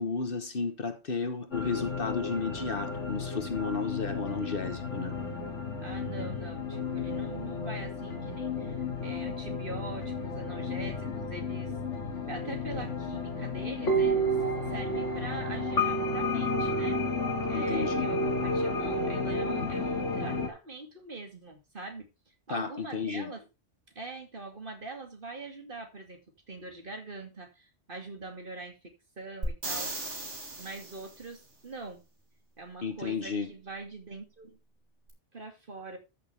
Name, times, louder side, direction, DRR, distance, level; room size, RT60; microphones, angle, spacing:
voice 1, 0.0-5.1 17.5-18.1 22.5-23.3 32.8-33.5, left 5 dB, 50° left, 1.3 m, -33 dB
sound 1, 1.5-20.5, left 1 dB, 85° left, 2.2 m, -32 dB
voice 2, 5.8-11.7 12.3-14.4 14.7-17.0 17.5-22.1 22.5-23.4 24.0-26.2 26.5-29.9 30.6-32.0 32.6-34.6 35.3-36.0, right 3 dB, 45° right, 2.5 m, -43 dB
sound 2, 29.4-31.3 35.1-35.2, right 2 dB, 75° right, 3.1 m, -36 dB
13.0 x 6.7 x 3.4 m
omnidirectional pair, 1.2 m